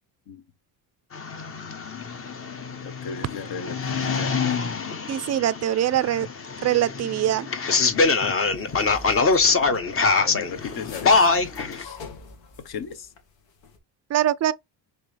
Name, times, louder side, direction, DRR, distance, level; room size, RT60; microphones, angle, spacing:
sound 1, 1.1-11.8, left 4 dB, 30° left, 0.9 m, -24 dB
voice 1, 2.8-4.4 9.7-11.3 11.6-12.0 12.6-13.1, left 6 dB, 55° left, 1.1 m, -37 dB
voice 2, 5.1-6.3 6.6-7.5 14.1-14.5, right 12 dB, 40° right, 0.4 m, -23 dB
sound 2, 7.8-13.2 13.5-13.8, left 3 dB, 80° left, 1.6 m, -44 dB
4.6 x 3.3 x 3.2 m
cardioid pair, 85°, 44 cm